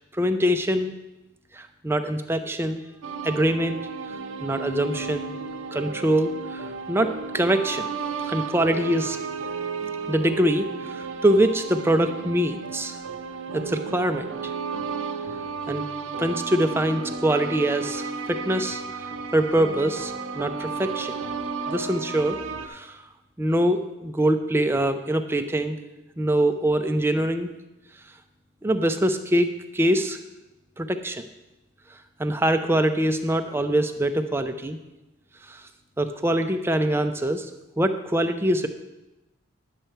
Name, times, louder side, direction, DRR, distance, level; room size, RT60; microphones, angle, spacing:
voice 1, 0.1-0.9 1.5-2.8 3.2-3.8 4.4-5.3 5.7-7.1 7.3-7.9 8.3-9.2 10.1-12.9 13.5-14.2 15.7-15.8 16.2-18.8 19.3-21.1 21.7-22.4 22.7-23.0 23.4-25.8 26.2-27.5 28.6-30.2 30.8-31.2 32.2-34.8 35.5-35.6 36.0-37.5 37.8-38.7, right 1 dB, 10° right, 7 dB, 0.4 m, -24 dB
sound 1, 3.0-22.7, right 5 dB, 80° right, 0.6 m, -33 dB
10.0 x 6.6 x 4.5 m, 1.0 s
head